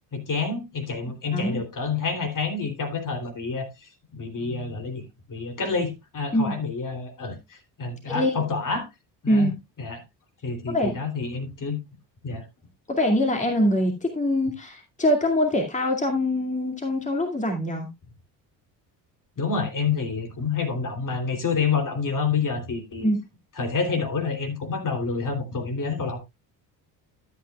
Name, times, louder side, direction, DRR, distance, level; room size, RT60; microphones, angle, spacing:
voice 1, 0.1-5.0 5.3-8.9 9.2-9.5 9.8-10.0 10.4-11.8 12.2-12.4 19.4-23.1 23.6-26.2, left 5 dB, 40° left, 3.1 m, -28 dB
voice 2, 1.3-1.6 6.3-6.6 8.1-8.4 9.3-9.5 10.7-11.0 12.9-17.9 23.0-23.2, left 1 dB, 15° left, 2.3 m, -23 dB
12.5 x 8.6 x 2.3 m
hypercardioid pair, 55°, 49 cm